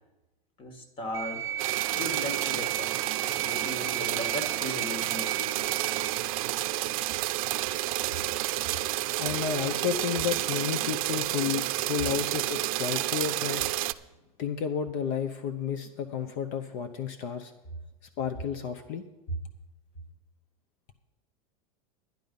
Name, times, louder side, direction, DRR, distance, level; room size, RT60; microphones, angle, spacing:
voice 1, 0.6-1.5 1.9-3.0 3.4-5.6 8.3-8.8, left 1 dB, 30° left, 7 dB, 1.7 m, -38 dB
sound 1, 1.1-6.2, right 11 dB, 15° right, 0.4 m, -34 dB
sound 2, 1.6-13.9, right 16 dB, 70° right, 0.5 m, -30 dB
voice 2, 9.2-13.7 14.4-17.5 18.2-19.0, left 7 dB, 45° left, 8 dB, 0.8 m, -31 dB
11.5 x 10.5 x 5.4 m, 1.0 s
supercardioid pair, 145°, 18 cm